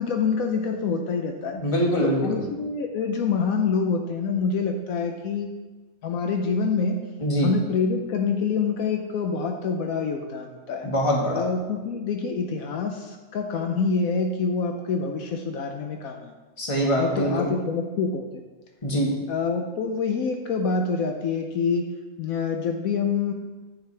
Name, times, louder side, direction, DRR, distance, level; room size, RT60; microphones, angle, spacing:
voice 1, 0.0-1.6 2.0-5.5 6.0-7.0 7.4-10.9 11.3-16.3 17.0-18.4 19.3-21.9 22.2-23.3, left 5 dB, 75° left, 4 dB, 1.1 m, -26 dB
voice 2, 1.5-2.4 7.2-7.5 10.8-11.5 16.6-17.5 18.8-19.1, equal, 20° left, -2 dB, 1.5 m, -23 dB
10.0 x 7.6 x 3.3 m, 1.2 s
omnidirectional pair, 1.5 m